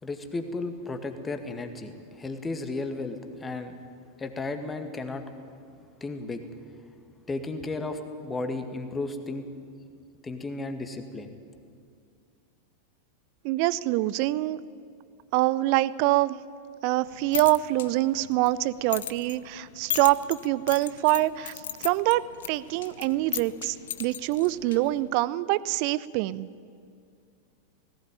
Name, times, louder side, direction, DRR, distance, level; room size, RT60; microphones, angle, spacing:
voice 1, 0.0-3.7 4.2-5.3 6.0-6.4 7.3-9.5 10.2-11.3, left 3 dB, 15° left, 7 dB, 1.9 m, -34 dB
voice 2, 13.4-14.6 15.3-16.4 16.8-21.5 21.8-26.5, right 17 dB, 45° right, 19 dB, 0.6 m, -25 dB
sound 1, 17.0-25.1, left 10 dB, 60° left, 0.8 m, -38 dB
18.5 x 17.0 x 9.2 m, 2.3 s
figure-of-eight pair, 90°, 0 cm